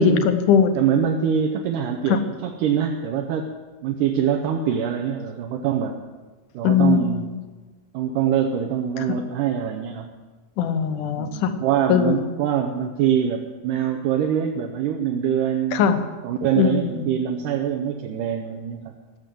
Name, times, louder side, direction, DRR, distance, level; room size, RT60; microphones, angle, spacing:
voice 1, 0.0-0.7 2.1-2.2 6.6-7.3 10.6-11.5 11.9-12.2 15.7-16.0 16.6-17.0, left 7 dB, 75° left, 9 dB, 2.3 m, -20 dB
voice 2, 0.8-3.5 3.8-5.9 6.5-7.3 7.9-10.1 11.2-15.9 16.2-18.8, right 8 dB, 75° right, 2 dB, 2.3 m, -24 dB
17.0 x 7.0 x 7.6 m, 1.3 s
omnidirectional pair, 4.0 m